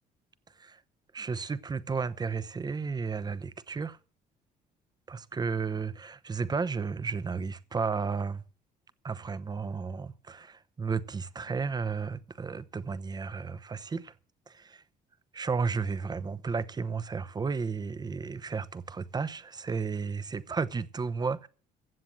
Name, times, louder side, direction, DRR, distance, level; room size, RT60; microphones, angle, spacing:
voice 1, 1.1-4.0 5.1-8.4 9.0-14.1 14.5-14.8 15.3-21.5, right 5 dB, 25° right, 0.8 m, -33 dB
15.5 x 7.5 x 7.7 m
cardioid pair, 110°, 17 cm